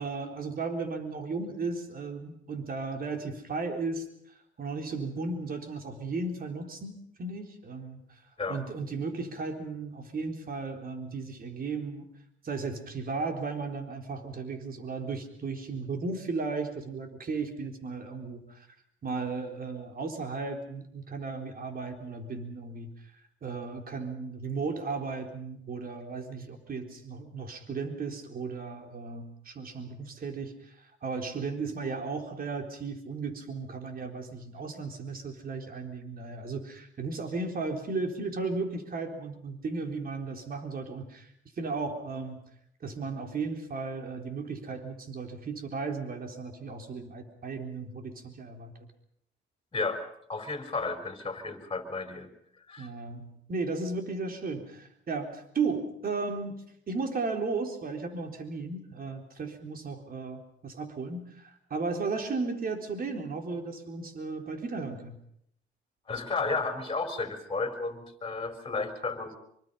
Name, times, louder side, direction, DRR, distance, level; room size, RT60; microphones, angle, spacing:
voice 1, 0.0-4.1 4.6-8.0 8.5-12.0 12.4-18.6 19.0-22.9 23.4-30.5 31.0-41.3 41.6-42.4 42.8-48.7 52.8-65.2, right 4 dB, 45° right, 4 dB, 4.0 m, -35 dB
voice 2, 49.7-50.0 50.3-52.3 52.7-52.9 66.1-69.4, left 3 dB, 25° left, 6 dB, 4.3 m, -33 dB
25.0 x 24.5 x 5.6 m, 0.71 s
cardioid pair, 90°, 20 cm